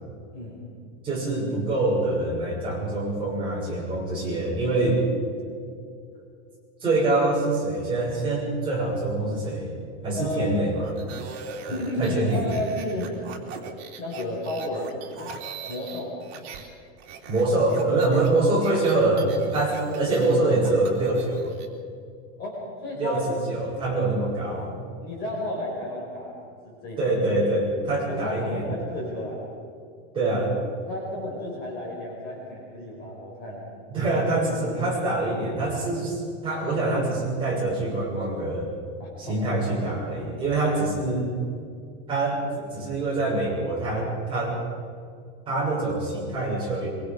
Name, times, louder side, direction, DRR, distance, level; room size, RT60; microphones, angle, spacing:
voice 1, 1.0-5.0 6.8-9.7 10.0-10.9 11.3-11.4 12.0-12.4 17.3-21.5 23.0-24.7 27.0-28.6 30.1-30.5 33.9-38.7 39.2-41.3 42.1-44.6 45.5-46.9, right 2 dB, 15° right, -6 dB, 7.2 m, -25 dB
voice 2, 10.1-10.6 11.6-13.2 14.0-14.9 15.6-16.2 22.4-23.2 25.0-27.1 28.1-29.4 30.9-33.6 39.0-39.4, left 1 dB, 25° left, -3 dB, 5.2 m, -32 dB
sound 1, 10.8-16.7 17.0-21.7, right 5 dB, 60° right, 3.4 m, -40 dB
24.5 x 23.5 x 5.3 m, 2.2 s
supercardioid pair, 175°, 35 cm